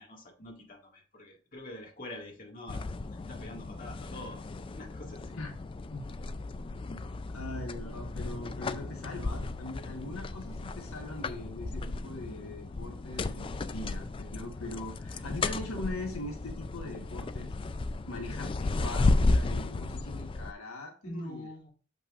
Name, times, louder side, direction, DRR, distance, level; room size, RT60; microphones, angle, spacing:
voice 1, 0.0-2.8 3.1-4.4 4.8-5.4 21.0-21.7, left 1 dB, 40° left, -1 dB, 2.1 m, -45 dB
sound 1, 2.7-20.5, left 2 dB, 25° left, 0.3 m, -34 dB
voice 2, 6.9-17.5 18.1-21.5, left 1 dB, 85° left, 2 dB, 1.4 m, -41 dB
7.3 x 5.5 x 2.5 m, 0.38 s
head